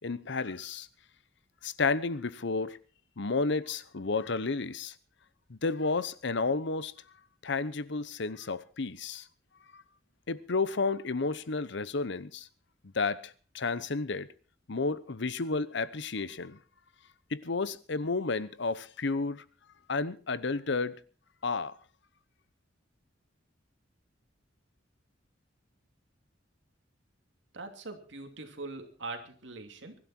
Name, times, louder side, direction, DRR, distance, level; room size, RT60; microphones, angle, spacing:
voice 1, 0.0-0.9 1.6-2.8 3.2-4.9 5.5-6.9 7.4-9.2 9.7-9.8 10.3-12.5 12.9-14.3 14.7-16.6 17.3-19.4 19.9-21.0 21.4-21.7, left 4 dB, 65° left, 0.9 m, -31 dB
voice 2, 27.5-30.0, right 3 dB, 65° right, 2.9 m, -42 dB
23.0 x 12.0 x 4.4 m
head